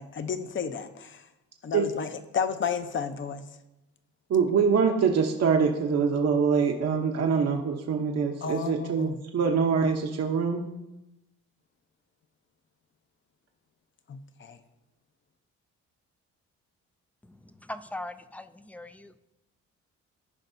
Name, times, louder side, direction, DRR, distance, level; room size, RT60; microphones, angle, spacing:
voice 1, 0.0-1.3 1.6-2.1 2.3-3.5 8.4-9.2 14.1-14.6, left 6 dB, 40° left, 9 dB, 0.8 m, -32 dB
voice 2, 4.3-10.7, right 6 dB, 55° right, 2 dB, 0.9 m, -24 dB
voice 3, 17.2-19.1, left 1 dB, 5° left, 11 dB, 0.4 m, -41 dB
14.5 x 5.3 x 2.7 m, 0.95 s
cardioid pair, 90°, 30 cm